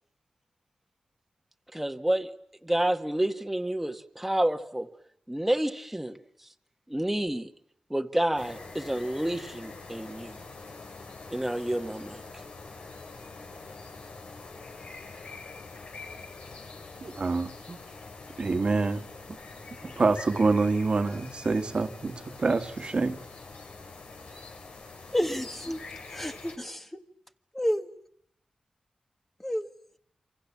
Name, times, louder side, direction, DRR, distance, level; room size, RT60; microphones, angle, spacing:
voice 1, 1.7-2.3 2.6-4.9 5.3-6.2 6.9-7.5 7.9-10.4 11.3-12.4, right 1 dB, 10° right, 1.8 m, -29 dB
sound 1, 8.4-26.6, left 3 dB, 75° left, 5.4 m, -45 dB
voice 2, 17.0-17.8 18.4-19.0 19.8-23.2, right 3 dB, 50° right, 2.0 m, -26 dB
voice 3, 25.1-25.8 26.0-27.0 27.5-27.9 29.4-29.7, equal, 10° left, 1.8 m, -30 dB
29.0 x 26.5 x 7.4 m
wide cardioid pair, 90°, 2 cm